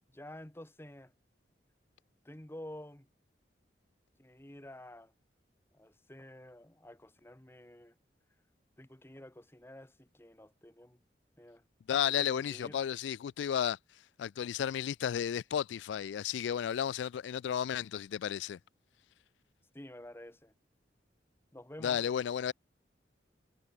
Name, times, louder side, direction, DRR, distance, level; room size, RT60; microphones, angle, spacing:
voice 1, 0.1-1.1 2.2-3.1 4.2-5.1 5.7-7.9 8.8-11.0 11.4-11.6 12.0-12.8 19.7-20.5 21.5-22.0, left 1 dB, 15° left, 1.4 m, -50 dB
voice 2, 11.9-13.8 14.2-18.6 21.8-22.5, left 9 dB, 80° left, 0.3 m, -33 dB
head